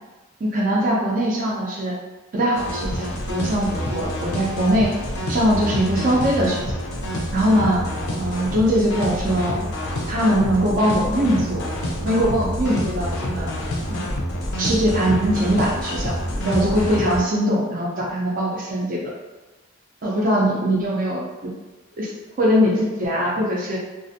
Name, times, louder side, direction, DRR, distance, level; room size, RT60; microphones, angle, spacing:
voice 1, 0.4-1.9 2.3-4.9 5.3-6.7 7.3-7.8 8.2-9.6 10.1-11.6 12.0-13.5 13.9-14.1 14.6-16.1 16.4-19.1 20.0-21.5 22.0-22.1 22.4-23.8, equal, 40° right, -3 dB, 0.4 m, -21 dB
sound 1, 2.5-17.2, equal, 80° left, 0.5 m, -27 dB
2.4 x 2.0 x 2.6 m, 1.1 s
head